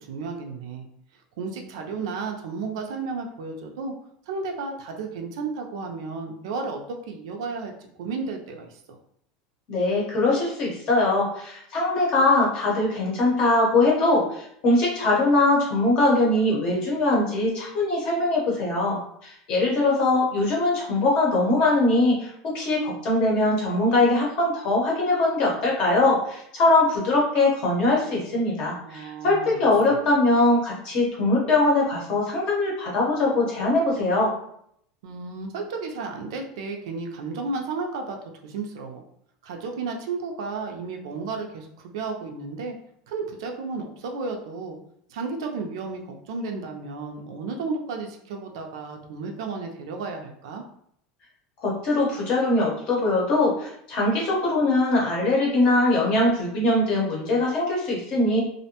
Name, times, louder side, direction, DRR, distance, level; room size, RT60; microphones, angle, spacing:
voice 1, 0.1-0.8 1.4-3.9 4.3-7.7 8.0-8.8 28.8-29.6 29.9-30.0 35.0-38.2 38.4-39.0 39.4-42.8 43.1-44.8 45.1-50.6, right 4 dB, 75° right, 3 dB, 0.5 m, -33 dB
voice 2, 9.7-34.3 51.6-58.4, left 2 dB, 35° left, -3 dB, 0.7 m, -22 dB
2.5 x 2.1 x 2.8 m, 0.70 s
supercardioid pair, 180°, 3 cm